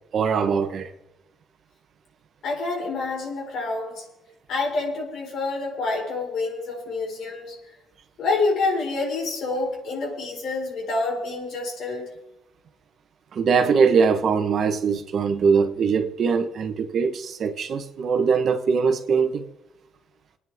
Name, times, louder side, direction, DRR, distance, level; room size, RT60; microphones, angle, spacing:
voice 1, 0.1-0.9 13.3-19.5, right 5 dB, 60° right, 1.3 m, -22 dB
voice 2, 2.4-4.0 4.5-7.6 8.2-12.0, left 3 dB, 75° left, 5.2 m, -27 dB
26.5 x 9.7 x 3.7 m
cardioid pair, 90°, 0 cm